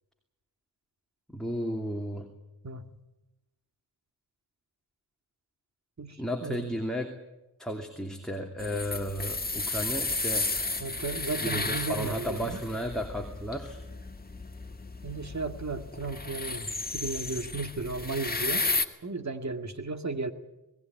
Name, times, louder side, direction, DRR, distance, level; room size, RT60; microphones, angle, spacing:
voice 1, 1.3-2.3 6.2-7.1 7.6-10.5 11.4-13.8, equal, ahead, 2 dB, 2.7 m, -33 dB
voice 2, 6.0-6.7 10.8-12.6 15.0-18.7 19.0-20.3, right 3 dB, 40° right, 8 dB, 2.1 m, -35 dB
sound 1, 8.6-18.9, left 3 dB, 20° left, 1.9 m, -33 dB
20.5 x 17.5 x 9.3 m, 1.0 s
cardioid pair, 45°, 44 cm